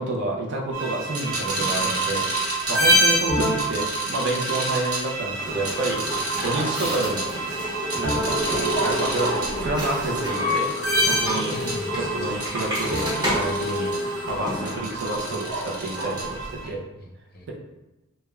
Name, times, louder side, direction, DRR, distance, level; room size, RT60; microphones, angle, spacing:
voice 1, 0.0-2.2 2.7-6.0 6.4-7.4 8.0-8.4 8.8-10.7 11.1-11.5 11.9-13.1 13.3-14.0 14.3-16.8, right 2 dB, 55° right, -1 dB, 0.5 m, -29 dB
sound 1, 0.7-16.7, right 1 dB, 85° right, 0.9 m, -27 dB
voice 2, 1.6-1.9 11.5-12.3 16.6-17.5, left 1 dB, 45° left, -1 dB, 0.5 m, -39 dB
sound 2, 5.4-14.8, left 1 dB, 20° right, 0.9 m, -29 dB
3.2 x 2.0 x 2.3 m, 1.0 s
head